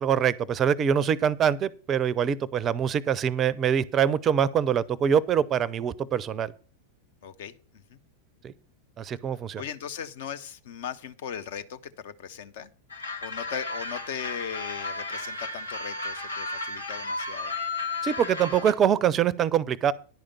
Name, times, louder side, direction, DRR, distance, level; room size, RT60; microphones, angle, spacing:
voice 1, 0.0-6.5 8.4-8.5 9.0-9.6 18.0-19.9, right 8 dB, 25° right, 0.4 m, -24 dB
voice 2, 7.2-8.0 9.6-12.7 13.2-17.5, left 8 dB, 55° left, 0.6 m, -38 dB
sound 1, 12.9-18.7, left 3 dB, 75° left, 0.9 m, -34 dB
10.5 x 5.0 x 6.9 m
figure-of-eight pair, 90°, 0 cm